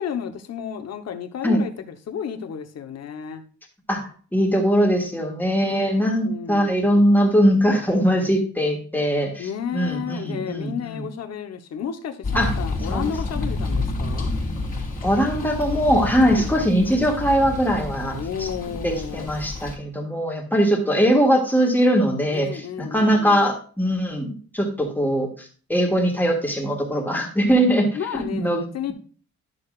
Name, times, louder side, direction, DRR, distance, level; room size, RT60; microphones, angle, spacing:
voice 1, 0.0-3.4 5.6-6.7 9.4-14.3 16.3-16.5 18.1-19.3 22.3-23.5 27.9-28.9, left 8 dB, 60° left, 7 dB, 1.0 m, -32 dB
voice 2, 4.3-11.0 12.3-12.5 12.9-13.0 15.0-18.5 18.8-27.9 28.3-28.6, equal, 5° left, 0 dB, 1.7 m, -21 dB
sound 1, 12.2-19.7, left 2 dB, 30° left, 2.2 m, -29 dB
11.5 x 6.7 x 2.4 m, 0.40 s
wide cardioid pair, 170°, 30 cm